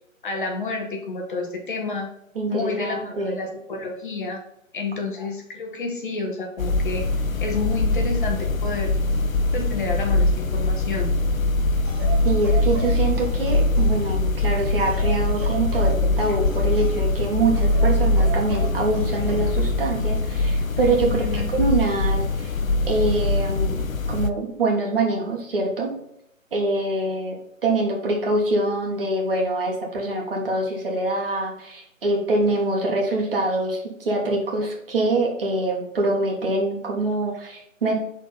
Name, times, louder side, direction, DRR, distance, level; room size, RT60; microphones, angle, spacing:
voice 1, 0.2-2.1 2.5-4.4 4.7-7.0 7.4-8.9 9.5-11.2 21.0-21.5, left 3 dB, 40° left, 2 dB, 1.2 m, -29 dB
voice 2, 2.4-3.4 12.2-21.2 21.5-22.5 22.9-23.8 24.1-25.9 26.5-27.4 27.6-37.9, right 2 dB, 45° right, 0 dB, 1.7 m, -24 dB
sound 1, 6.6-24.3, left 2 dB, 85° left, 0.6 m, -22 dB
sound 2, 11.8-14.1 14.8-17.2 17.6-19.8 20.8-21.1, right 3 dB, 15° right, 1.4 m, -37 dB
6.1 x 4.1 x 4.0 m, 0.78 s
figure-of-eight pair, 140°, 40 cm